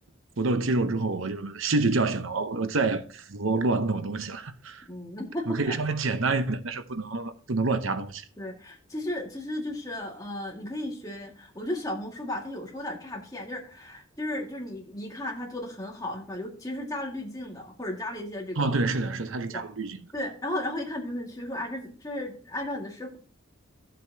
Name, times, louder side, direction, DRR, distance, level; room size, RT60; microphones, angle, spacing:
voice 1, 0.4-4.8 5.5-8.2 18.6-20.0, right 3 dB, 70° right, 0.8 m, -27 dB
voice 2, 4.9-5.8 8.4-18.7 19.5-19.6 20.1-23.2, left 1 dB, 15° left, 2.0 m, -35 dB
13.5 x 7.6 x 2.8 m
head